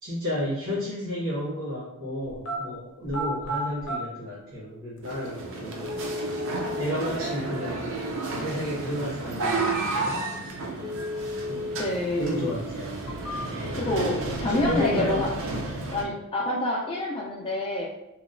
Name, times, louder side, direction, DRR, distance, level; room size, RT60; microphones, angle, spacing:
voice 1, 0.0-5.9 6.8-7.8 8.4-10.2 11.5-11.8 12.2-13.2 13.5-13.8 14.4-15.2, equal, 80° right, -8 dB, 0.9 m, -32 dB
sound 1, 2.3-2.6 3.0-4.0 5.0-5.1 5.8-6.8 10.8-11.8 12.2-12.3 12.9-13.8 14.2-14.9 15.2-15.8, equal, 70° left, 0.6 m, -34 dB
sound 2, 5.0-16.0, right 3 dB, 60° right, 0.4 m, -32 dB
voice 2, 11.8-12.5 13.7-15.3 15.9-17.9, left 2 dB, 25° left, -7 dB, 0.3 m, -27 dB
2.9 x 2.0 x 2.4 m, 0.93 s
head